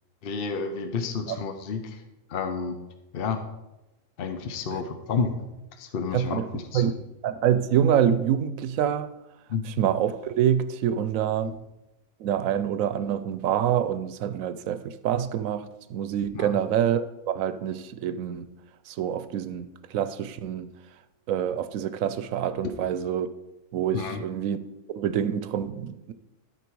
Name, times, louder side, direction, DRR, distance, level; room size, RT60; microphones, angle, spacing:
voice 1, 0.2-2.0 2.3-2.7 3.1-3.4 4.2-5.4 5.8-6.8 9.5-9.6 16.3-16.6 23.9-24.2, left 5 dB, 50° left, 0.9 m, -30 dB
voice 2, 6.1-6.5 6.7-6.9 7.2-9.1 9.8-11.6 12.2-18.5 18.9-20.7 21.3-23.3 23.7-24.6 24.9-26.1, right 9 dB, 85° right, 1.0 m, -26 dB
13.0 x 4.5 x 4.6 m
omnidirectional pair, 1.4 m